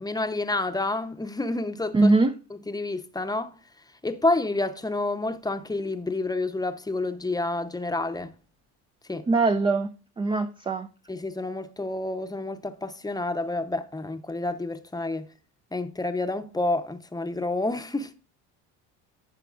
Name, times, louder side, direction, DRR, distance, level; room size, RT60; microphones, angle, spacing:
voice 1, 0.0-2.1 2.5-3.5 4.0-8.3 9.1-9.3 11.1-15.3 15.7-18.1, left 2 dB, 10° left, 0.7 m, -29 dB
voice 2, 1.9-2.3 9.3-9.9 10.2-10.9, right 3 dB, 15° right, 0.4 m, -21 dB
14.5 x 5.8 x 2.5 m
supercardioid pair, 95°, 42 cm